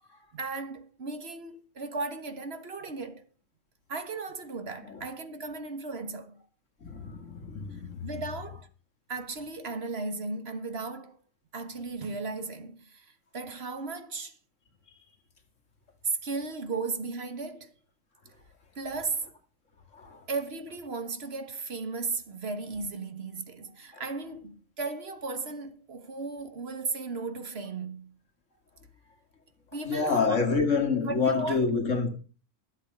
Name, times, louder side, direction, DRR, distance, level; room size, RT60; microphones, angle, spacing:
voice 1, 0.3-3.2 3.9-6.4 8.0-8.7 9.1-11.2 11.5-14.3 16.2-17.7 18.8-19.3 20.3-28.1 29.7-30.4 31.1-31.6, right 3 dB, 55° right, 1.5 m, -36 dB
voice 2, 6.8-8.1 19.9-20.2 23.9-24.0 29.9-32.1, left 4 dB, 70° left, 2.5 m, -27 dB
13.0 x 8.1 x 5.3 m
omnidirectional pair, 1.3 m